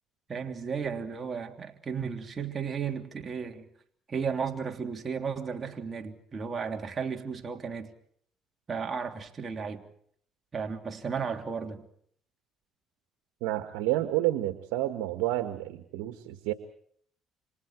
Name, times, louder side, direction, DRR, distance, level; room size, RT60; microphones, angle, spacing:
voice 1, 0.3-3.7 4.1-7.9 8.7-9.8 10.5-11.9, right 6 dB, 35° right, 3.2 m, -34 dB
voice 2, 13.4-16.5, right 15 dB, 90° right, 1.6 m, -29 dB
30.0 x 27.0 x 4.6 m
supercardioid pair, 80°, 0 cm